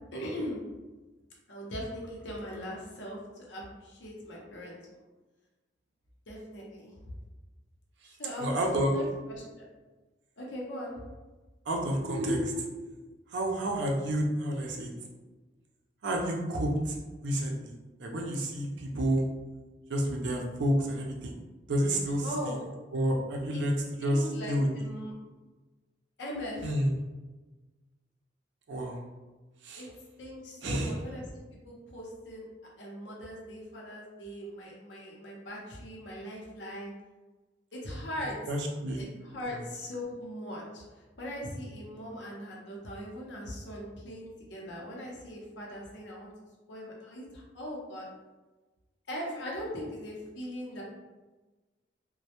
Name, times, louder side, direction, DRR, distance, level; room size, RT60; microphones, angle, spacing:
voice 1, 0.1-0.6 1.5-4.8 6.3-7.1 8.2-9.4 10.4-11.0 22.2-22.6 23.5-23.6 24.0-25.1 26.2-26.8 29.8-29.9 30.2-31.3 31.6-32.5 32.8-36.9 37.7-38.4 39.0-46.3 46.7-48.1 49.1-50.8, equal, 80° left, -3 dB, 0.6 m, -40 dB
voice 2, 8.4-8.9 11.7-12.7 13.3-14.9 16.0-16.9 17.2-17.7 18.0-19.2 19.9-21.4 21.7-22.5 22.9-23.7 24.0-24.7 26.6-26.9 28.7-29.0 29.6-29.9 30.6-30.9 38.5-39.0, right 1 dB, 85° right, 0 dB, 0.5 m, -29 dB
2.1 x 2.1 x 2.8 m, 1.2 s
head